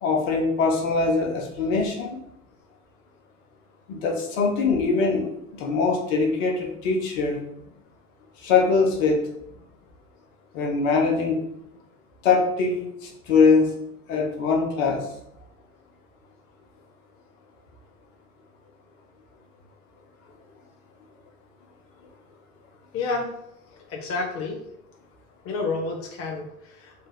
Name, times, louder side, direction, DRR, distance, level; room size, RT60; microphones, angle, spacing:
voice 1, 0.0-2.2 3.9-7.4 8.4-9.2 10.5-11.4 12.2-13.7 14.1-15.1, left 4 dB, 60° left, 0 dB, 1.2 m, -22 dB
voice 2, 22.9-23.3 23.9-24.6 25.4-26.9, left 3 dB, 30° left, 0 dB, 0.7 m, -29 dB
3.7 x 2.5 x 4.0 m, 0.79 s
figure-of-eight pair, 80°, 44 cm